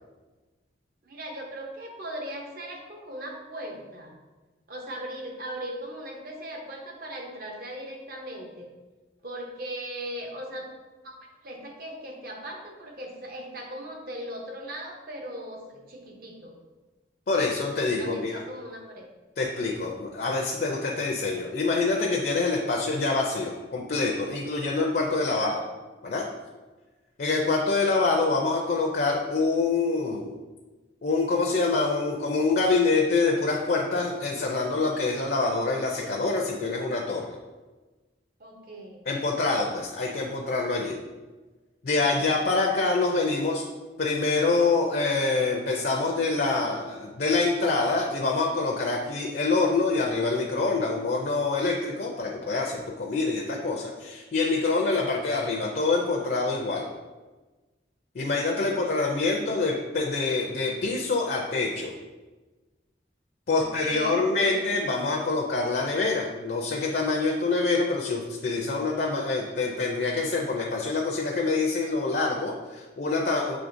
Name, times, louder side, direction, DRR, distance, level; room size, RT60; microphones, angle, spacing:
voice 1, 1.1-4.1 4.7-8.7 9.2-10.7 11.0-11.2 11.4-16.5 18.0-19.1 25.0-25.6 38.4-39.1 41.9-42.6 58.6-59.0 63.5-64.7, right 1 dB, 55° right, 1 dB, 0.7 m, -39 dB
voice 2, 17.3-18.4 19.4-25.6 26.0-26.2 27.2-30.4 31.0-37.3 39.1-41.0 41.8-43.6 44.0-56.9 58.1-61.9 63.5-73.6, left 3 dB, 55° left, -1 dB, 0.4 m, -26 dB
6.1 x 3.1 x 2.6 m, 1.2 s
head